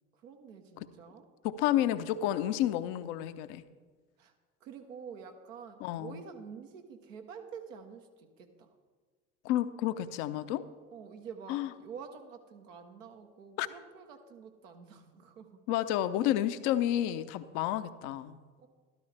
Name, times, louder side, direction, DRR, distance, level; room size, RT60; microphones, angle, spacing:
voice 1, 0.2-1.2 4.2-4.3 4.6-8.1 8.4-8.7 10.9-15.5 18.6-18.7, right 6 dB, 80° right, 5 dB, 1.1 m, -48 dB
voice 2, 1.4-3.6 5.8-6.2 9.4-10.6 11.5-11.7 13.6-13.7 15.7-18.4, left 12 dB, 70° left, 13 dB, 0.7 m, -30 dB
13.0 x 12.5 x 3.4 m, 1.5 s
hypercardioid pair, 55°, 38 cm